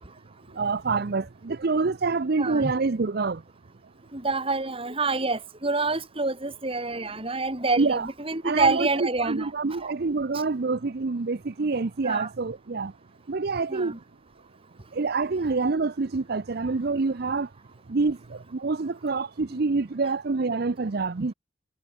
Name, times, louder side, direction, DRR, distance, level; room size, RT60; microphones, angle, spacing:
voice 1, 0.6-3.4 7.8-8.1 8.4-12.9 13.3-13.9 14.9-17.5 17.9-21.3, right 4 dB, 55° right, 0.6 m, -26 dB
voice 2, 2.4-2.7 4.1-9.9 12.0-12.3 13.7-14.0, right 3 dB, 30° right, 3.0 m, -27 dB
head